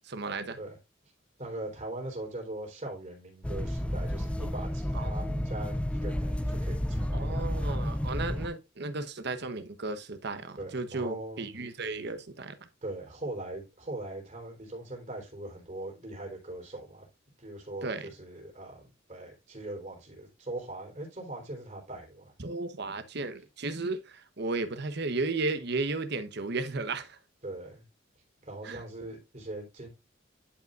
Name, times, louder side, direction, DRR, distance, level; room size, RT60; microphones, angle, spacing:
voice 1, 0.0-0.6 4.9-5.5 7.1-12.6 17.8-18.1 22.4-27.2 28.6-28.8, right 3 dB, 55° right, 1.0 m, -34 dB
voice 2, 1.4-7.6 10.6-11.5 12.8-17.1 17.4-22.3 27.4-27.8 28.4-29.9, right 2 dB, 35° right, 3.6 m, -41 dB
sound 1, 3.4-8.5, equal, 5° left, 0.4 m, -31 dB
11.0 x 5.2 x 2.4 m
head